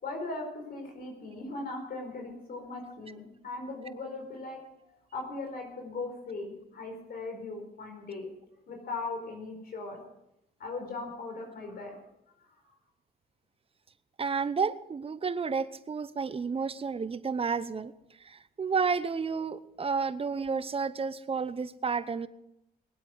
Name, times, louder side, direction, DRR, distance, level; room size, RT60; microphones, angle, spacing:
voice 1, 0.0-4.6 5.1-8.3 8.7-10.0 10.6-12.0 12.4-12.6, left 3 dB, 65° left, 2 dB, 4.7 m, -39 dB
voice 2, 14.2-17.9 18.3-22.3, right 5 dB, 35° right, 14 dB, 0.9 m, -31 dB
21.5 x 8.3 x 6.3 m, 0.82 s
cardioid pair, 85°, 17 cm